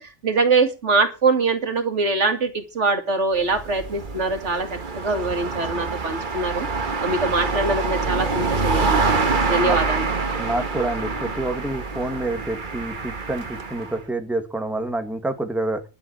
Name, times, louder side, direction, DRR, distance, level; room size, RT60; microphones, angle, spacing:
voice 1, 0.0-4.7 5.0-6.7 7.0-10.1, right 3 dB, 85° right, 8 dB, 2.4 m, -23 dB
sound 1, 3.3-14.0, right 4 dB, 45° right, 1.4 m, -26 dB
voice 2, 10.4-15.8, right 2 dB, ahead, 7 dB, 1.7 m, -27 dB
11.0 x 7.2 x 7.8 m, 0.30 s
omnidirectional pair, 1.2 m